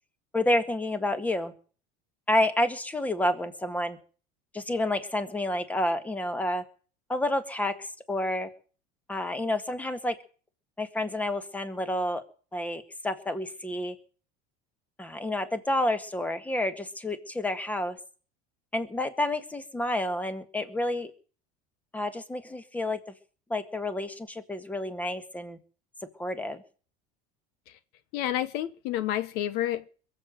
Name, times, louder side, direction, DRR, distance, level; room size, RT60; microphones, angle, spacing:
voice 1, 0.3-1.5 2.3-4.0 4.5-6.6 7.1-8.5 9.1-10.2 10.8-12.2 12.5-14.0 15.0-18.0 18.7-21.1 21.9-23.0 23.5-25.6 26.2-26.6, left 1 dB, 10° left, 1.8 m, -29 dB
voice 2, 28.1-29.9, left 12 dB, 65° left, 1.1 m, -29 dB
22.0 x 7.9 x 7.9 m
supercardioid pair, 130°, 18 cm